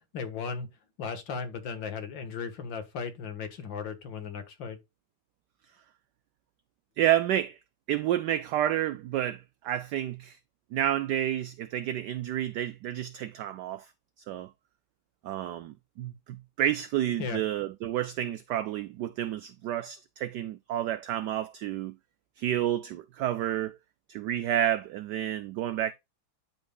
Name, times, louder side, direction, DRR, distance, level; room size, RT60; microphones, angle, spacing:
voice 1, 0.1-0.7 1.0-4.8 17.2-17.4, left 6 dB, 65° left, 2.1 m, -36 dB
voice 2, 7.0-7.6 7.9-10.4 10.7-13.9 14.3-14.5 15.2-21.9 22.4-23.8 24.1-25.9, right 12 dB, 90° right, 0.9 m, -30 dB
12.0 x 5.3 x 2.3 m
omnidirectional pair, 2.4 m